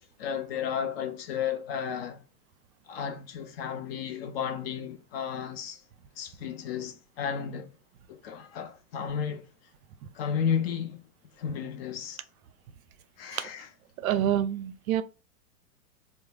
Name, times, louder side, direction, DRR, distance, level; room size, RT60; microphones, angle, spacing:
voice 1, 0.2-2.2 2.9-5.8 6.2-7.7 8.1-9.5 10.1-11.0 11.4-12.2 13.2-13.7, left 7 dB, 40° left, 0.4 m, -33 dB
voice 2, 14.0-15.0, right 11 dB, 65° right, 0.5 m, -27 dB
2.2 x 2.1 x 3.1 m
hypercardioid pair, 115°, 47 cm